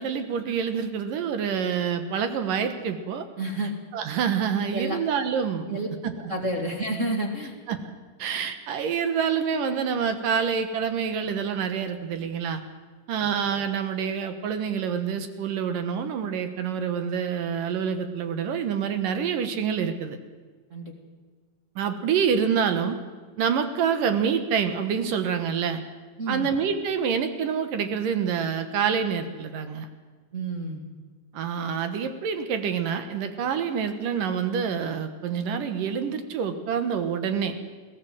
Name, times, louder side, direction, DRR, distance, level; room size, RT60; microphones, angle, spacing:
voice 1, 0.0-3.2 3.9-5.8 6.0-6.3 7.7-7.8 8.2-12.6 13.1-20.2 21.8-23.0 23.4-25.8 26.3-29.9 31.3-37.5, right 7 dB, 70° right, 9 dB, 2.8 m, -27 dB
voice 2, 3.4-3.7 4.7-5.0 5.7-5.9 6.2-7.6 13.2-13.3 20.7-20.9 26.2-26.5 30.3-30.8, right 1 dB, 25° right, 2 dB, 1.9 m, -30 dB
21.5 x 17.0 x 7.8 m, 1.5 s
omnidirectional pair, 4.4 m